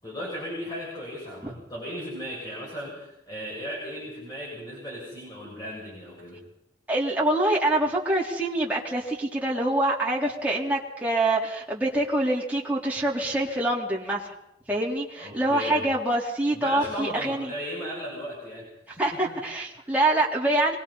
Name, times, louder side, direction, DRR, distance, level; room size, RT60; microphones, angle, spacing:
voice 1, 0.0-6.4 15.1-15.9 16.5-19.4 19.8-20.0, equal, 20° left, -5 dB, 7.4 m, -36 dB
voice 2, 6.9-14.3 14.7-17.5 19.0-20.8, right 1 dB, 10° right, -4 dB, 3.7 m, -25 dB
24.5 x 21.0 x 5.7 m, 0.83 s
head